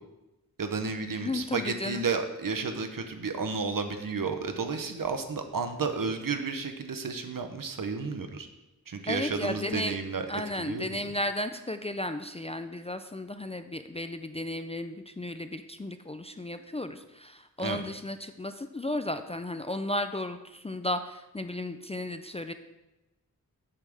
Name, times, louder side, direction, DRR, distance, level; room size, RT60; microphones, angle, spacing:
voice 1, 0.6-8.5 8.9-11.0 17.6-17.8, right 4 dB, 65° right, 6 dB, 0.8 m, -32 dB
voice 2, 1.2-2.1 9.1-9.9 10.3-22.5, left 1 dB, 20° left, 8 dB, 0.3 m, -34 dB
8.5 x 3.5 x 6.2 m, 1.0 s
wide cardioid pair, 55°, 36 cm